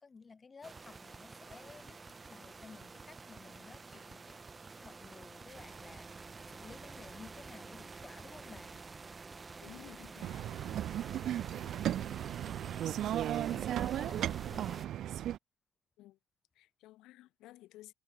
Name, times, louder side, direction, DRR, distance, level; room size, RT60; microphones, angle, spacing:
voice 1, 0.0-2.0 2.3-4.4 4.8-6.1 6.4-8.8 13.1-14.8, left 4 dB, 30° left, 3.2 m, -54 dB
sound 1, 0.6-14.9, right 4 dB, 25° right, 2.8 m, -49 dB
voice 2, 9.6-10.5 16.0-16.2 16.6-17.9, left 16 dB, 70° left, 3.7 m, -55 dB
sound 2, 10.2-15.4, right 11 dB, 60° right, 0.9 m, -35 dB
supercardioid pair, 80°, 0 cm